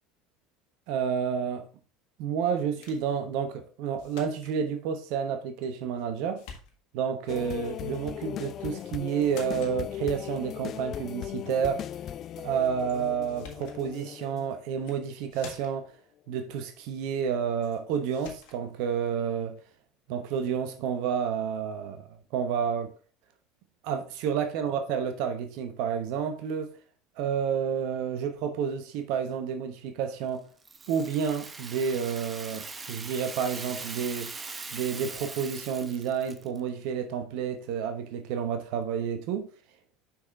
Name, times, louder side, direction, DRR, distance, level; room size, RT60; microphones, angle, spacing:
voice 1, 0.9-1.7 2.2-6.4 6.9-11.8 12.4-15.9 16.3-19.6 20.1-22.9 23.8-26.7 27.2-30.5 30.9-34.3 34.7-39.5, right 7 dB, 65° right, 0.9 m, -30 dB
sound 1, 2.8-3.1 4.0-4.6 5.6-6.1 6.4-7.1 8.7-8.9 9.2-9.8 12.9-13.0 13.3-13.8 14.7-15.0 15.3-15.9 17.6-17.8 18.1-18.6, left 6 dB, 65° left, 1.6 m, -48 dB
sound 2, 7.3-15.2 15.7-15.8, left 11 dB, 45° left, 0.3 m, -38 dB
Rattle (instrument), 30.6-36.6, right 4 dB, 25° right, 0.9 m, -41 dB
5.8 x 5.7 x 3.5 m
hypercardioid pair, 75°, 0 cm